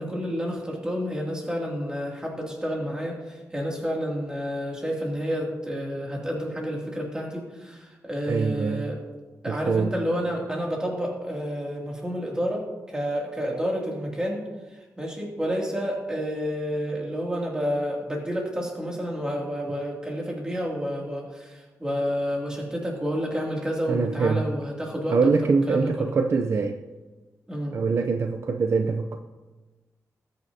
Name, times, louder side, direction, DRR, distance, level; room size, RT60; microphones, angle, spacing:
voice 1, 0.0-9.0 9.4-14.4 14.7-26.1 27.5-27.8, equal, 10° right, -2 dB, 2.5 m, -30 dB
voice 2, 8.2-8.9 9.5-9.9 23.9-24.4 25.1-26.8 27.7-29.2, right 4 dB, 50° right, 6 dB, 0.5 m, -24 dB
20.0 x 9.2 x 2.8 m, 1.2 s
wide cardioid pair, 170°, 6 cm